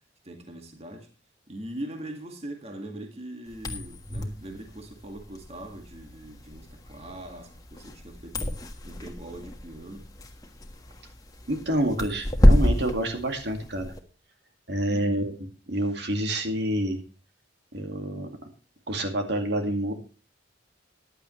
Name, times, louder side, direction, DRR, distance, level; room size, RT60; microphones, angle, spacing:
voice 1, 0.2-1.1 1.5-10.1 14.8-15.3, right 1 dB, 35° right, 2.0 m, -41 dB
sound 1, 3.5-14.0, equal, 20° left, 1.5 m, -27 dB
voice 2, 11.5-13.9 14.7-15.3 15.7-17.0 17.7-18.3 18.9-19.9, right 1 dB, 60° right, 2.2 m, -28 dB
15.0 x 10.5 x 3.2 m
head